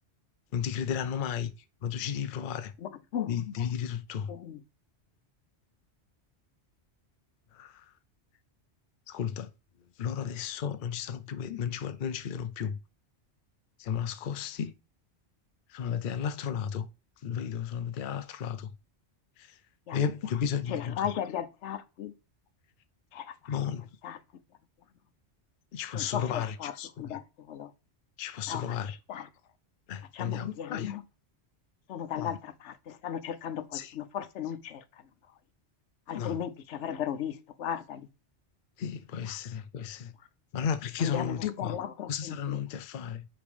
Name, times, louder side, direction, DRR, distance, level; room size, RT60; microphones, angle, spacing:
voice 1, 0.5-1.5 1.8-2.7 3.3-4.3 7.5-7.8 9.1-9.5 10.0-12.8 13.8-14.7 15.7-16.9 17.2-18.7 19.4-19.5 19.9-21.2 23.5-23.9 25.7-27.2 28.2-28.9 29.9-30.9 32.2-32.4 33.7-33.9 36.1-36.4 38.8-40.1 40.5-41.8 42.1-43.3, left 8 dB, 55° left, 0.7 m, -33 dB
voice 2, 2.8-3.3 4.3-4.6 19.9-20.1 20.7-22.1 23.1-23.6 24.0-24.2 25.9-26.7 27.0-27.2 27.5-27.7 28.5-29.3 30.1-31.0 31.9-34.8 36.1-38.1 39.3-39.4 41.0-42.6, left 9 dB, 90° left, 1.0 m, -36 dB
5.2 x 4.3 x 4.9 m
omnidirectional pair, 1.2 m